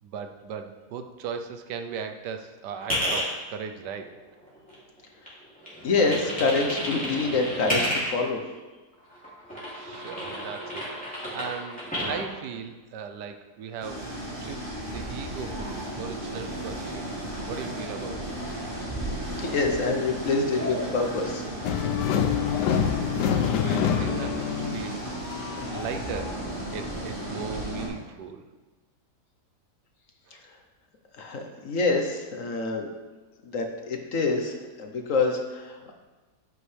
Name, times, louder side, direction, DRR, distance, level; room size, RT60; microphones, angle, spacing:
voice 1, 0.0-4.2 9.7-17.1 17.5-18.5 23.0-25.2 25.5-26.4 26.7-28.5 30.3-30.4, right 6 dB, 85° right, 7 dB, 1.3 m, -38 dB
sound 1, 2.8-3.3 3.8-5.0 5.3-8.3 9.0-12.2, equal, 5° left, 2.9 m, -31 dB
voice 2, 5.8-8.4 19.3-21.4 31.2-32.9 33.4-35.9, left 3 dB, 55° left, 3 dB, 1.3 m, -26 dB
sound 2, 13.8-27.9, right 1 dB, 30° right, 2.4 m, -34 dB
sound 3, 21.6-26.7, left 8 dB, 85° left, 1.3 m, -27 dB
9.9 x 8.5 x 3.4 m, 1.2 s
omnidirectional pair, 1.8 m